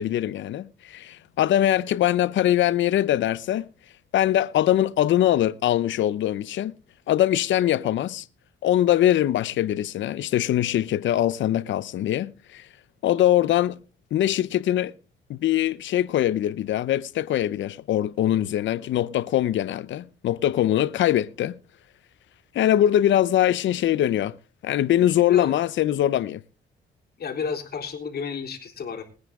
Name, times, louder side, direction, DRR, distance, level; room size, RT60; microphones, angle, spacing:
voice 1, 0.0-3.7 4.1-6.7 7.1-8.2 8.6-12.7 13.0-13.8 14.1-14.9 15.3-21.6 22.5-24.3 24.6-26.4, left 12 dB, 70° left, 0.7 m, -22 dB
voice 2, 25.2-25.5 27.2-29.0, left 6 dB, 50° left, 3.6 m, -31 dB
20.5 x 9.7 x 3.6 m
cardioid pair, 90°, 20 cm